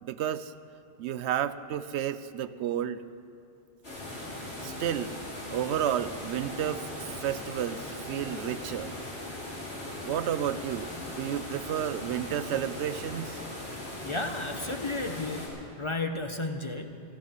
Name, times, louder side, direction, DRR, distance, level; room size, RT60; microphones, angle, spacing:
voice 1, 0.0-0.5 1.0-3.0 4.6-5.1 5.5-8.9 10.0-13.4, right 10 dB, 85° right, 14 dB, 0.9 m, -31 dB
sound 1, 3.8-15.5, left 1 dB, 65° left, 3.8 m, -39 dB
voice 2, 14.0-17.0, left 2 dB, 30° left, 6 dB, 0.8 m, -33 dB
16.0 x 13.0 x 6.4 m, 2.6 s
omnidirectional pair, 1.1 m